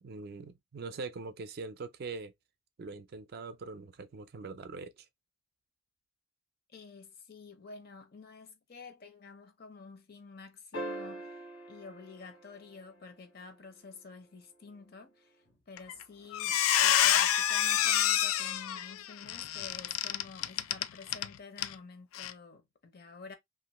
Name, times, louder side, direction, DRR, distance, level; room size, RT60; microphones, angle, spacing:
voice 1, 0.0-2.3 2.8-5.1, right 4 dB, 50° right, 0.4 m, -42 dB
voice 2, 6.7-11.4 11.7-23.3, left 4 dB, 50° left, 0.6 m, -50 dB
sound 1, 10.7-13.3 15.5-15.6, right 1 dB, 70° left, 1.1 m, -43 dB
Squeak, 15.8-16.0 16.3-21.3 21.6-21.7 22.1-22.3, left 11 dB, 85° left, 0.3 m, -27 dB
2.9 x 2.5 x 2.9 m
head